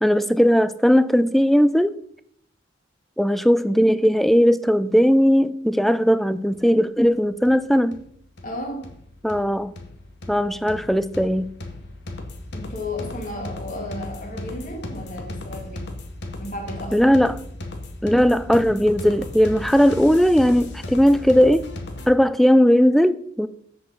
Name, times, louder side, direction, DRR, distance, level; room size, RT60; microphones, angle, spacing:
voice 1, 0.0-1.9 3.2-8.0 9.2-9.7 10.3-11.5 16.9-17.4 18.0-21.7 22.1-23.5, equal, ahead, 0.3 m, -18 dB
sound 1, 6.5-6.6 7.0-7.1 7.5-22.1, left 2 dB, 65° left, 1.2 m, -36 dB
voice 2, 8.4-8.9 12.5-15.9 16.4-17.0, left 1 dB, 45° left, 2.1 m, -33 dB
7.7 x 6.3 x 5.5 m
head